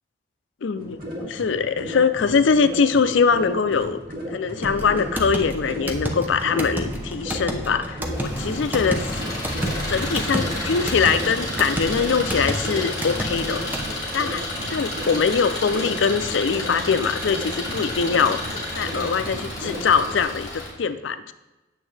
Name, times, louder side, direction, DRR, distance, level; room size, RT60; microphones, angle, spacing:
voice 1, 0.6-4.0 4.3-9.1 9.9-13.6 14.1-14.4 14.7-18.4 18.8-21.3, left 5 dB, 85° left, 11 dB, 0.5 m, -22 dB
sound 1, 0.7-20.2, equal, 50° right, 2.2 m, -35 dB
sound 2, 4.6-13.9, right 1 dB, 10° right, 0.7 m, -30 dB
Engine, 8.1-20.7, left 1 dB, 25° left, 2.7 m, -31 dB
9.1 x 7.2 x 3.3 m, 1.1 s
head